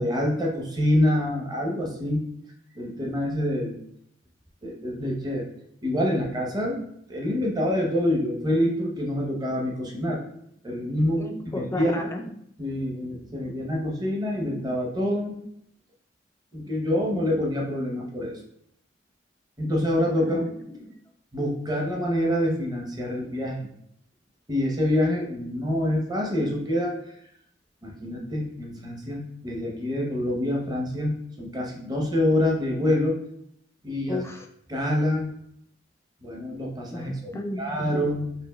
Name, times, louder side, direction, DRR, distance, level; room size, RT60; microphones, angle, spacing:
voice 1, 0.0-2.2 2.8-3.8 4.6-5.5 5.8-6.8 7.1-10.2 10.6-11.3 11.5-12.1 12.6-15.3 16.5-18.4 19.6-20.4 21.3-23.7 24.5-26.9 27.8-33.2 33.8-34.2 34.7-35.3 36.2-37.1 37.6-38.3, left 1 dB, 20° right, -1 dB, 0.8 m, -26 dB
voice 2, 11.2-12.2 20.2-21.0 34.1-34.5 36.9-38.0, left 2 dB, 15° left, 3 dB, 0.4 m, -34 dB
5.2 x 2.6 x 2.2 m, 0.71 s
head